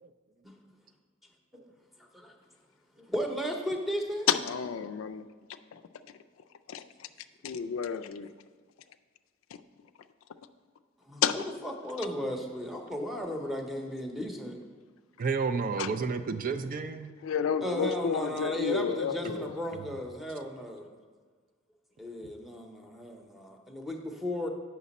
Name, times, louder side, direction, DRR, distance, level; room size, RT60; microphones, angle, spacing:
voice 1, 3.1-4.3 11.1-14.6 17.6-20.8 22.0-24.5, equal, ahead, 2 dB, 0.7 m, -35 dB
voice 2, 4.3-5.2 5.7-5.8 6.7-7.1 7.4-8.3 9.5-9.6 11.2-11.4 15.8-15.9 17.2-19.6, left 7 dB, 80° left, 10 dB, 0.4 m, -30 dB
voice 3, 15.2-17.1, right 5 dB, 45° right, 8 dB, 0.4 m, -31 dB
8.2 x 5.9 x 4.1 m, 1.5 s
head